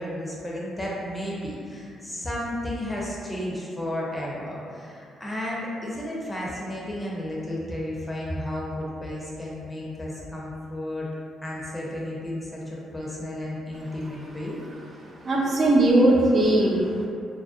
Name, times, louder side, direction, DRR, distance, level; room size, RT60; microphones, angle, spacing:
voice 1, 0.0-11.1 11.4-14.6, left 1 dB, 15° left, -5 dB, 0.5 m, -33 dB
voice 2, 15.2-17.1, right 1 dB, 45° right, -3 dB, 0.4 m, -19 dB
2.5 x 2.0 x 2.4 m, 2.4 s
cardioid pair, 90°, 0 cm